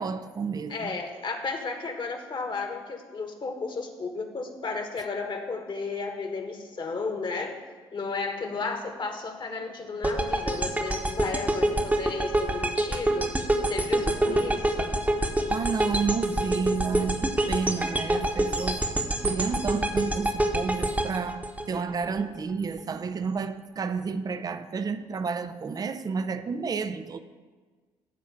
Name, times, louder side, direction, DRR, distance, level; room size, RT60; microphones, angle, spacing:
voice 1, 0.0-1.0 14.2-14.5 15.5-18.9 19.2-27.2, right 5 dB, 30° right, 0.6 m, -31 dB
voice 2, 0.7-7.6 7.9-13.3 13.6-14.9, left 4 dB, 35° left, 1.5 m, -33 dB
sound 1, 10.0-22.2, right 1 dB, 10° right, 1.1 m, -26 dB
12.5 x 4.3 x 6.9 m
figure-of-eight pair, 50°, 13 cm